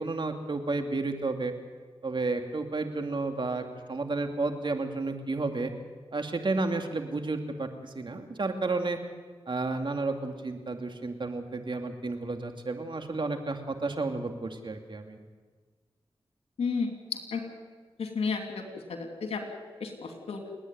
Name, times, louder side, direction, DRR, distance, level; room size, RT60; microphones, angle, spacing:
voice 1, 0.0-1.5 2.0-5.7 6.1-9.0 9.5-15.2, right 3 dB, 50° right, 5 dB, 2.5 m, -32 dB
voice 2, 16.6-16.9 17.3-17.4 18.0-19.4 19.8-20.4, left 5 dB, 90° left, 4 dB, 2.8 m, -32 dB
29.5 x 10.0 x 9.3 m, 1.4 s
cardioid pair, 50°, 10 cm